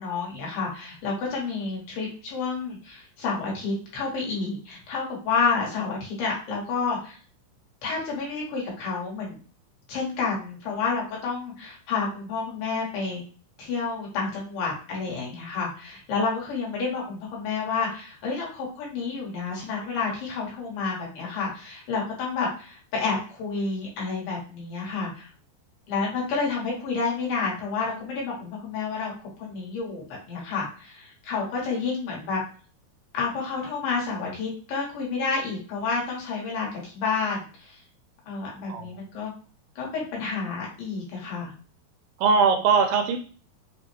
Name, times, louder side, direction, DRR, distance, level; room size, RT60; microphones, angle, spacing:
voice 1, 0.0-7.2 7.8-9.4 9.9-13.2 13.6-25.3 25.9-29.1 29.4-32.4 33.1-37.8 38.3-39.3 39.8-41.5, left 4 dB, 85° left, -3 dB, 3.1 m, -30 dB
voice 2, 42.2-43.2, right 5 dB, 80° right, 4 dB, 2.1 m, -21 dB
6.0 x 2.1 x 2.9 m, 0.40 s
omnidirectional pair, 4.1 m